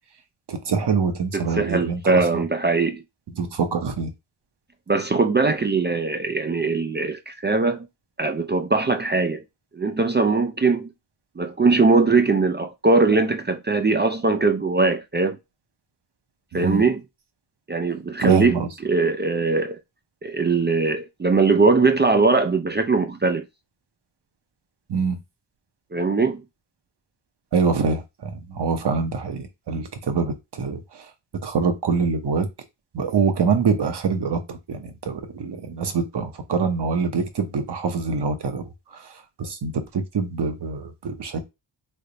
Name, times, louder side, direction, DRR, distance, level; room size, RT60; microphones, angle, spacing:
voice 1, 0.5-2.4 3.4-4.1 16.5-16.8 18.2-18.7 24.9-25.2 27.5-31.1 31.4-32.5 32.9-41.4, right 5 dB, 55° right, 0.9 m, -25 dB
voice 2, 1.3-3.0 4.9-7.9 8.2-9.4 9.7-10.9 11.4-15.4 16.5-17.0 17.7-19.8 20.2-23.4 25.9-26.4, right 3 dB, 25° right, 0.3 m, -21 dB
3.4 x 2.1 x 3.9 m
cardioid pair, 70°, 50 cm